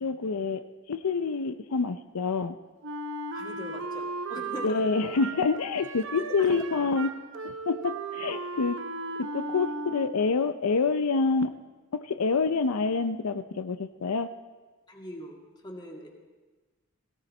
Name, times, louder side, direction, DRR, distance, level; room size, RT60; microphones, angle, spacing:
voice 1, 0.0-2.5 4.6-7.1 7.4-8.8 9.2-11.5 11.9-14.3, left 4 dB, 90° left, 9 dB, 0.6 m, -27 dB
Wind instrument woodwind instrument, 2.8-10.4, right 3 dB, 60° right, 0.8 m, -36 dB
voice 2, 3.3-4.9 14.9-16.1, left 1 dB, 20° left, -1 dB, 2.2 m, -41 dB
18.0 x 17.5 x 4.3 m, 1.3 s
head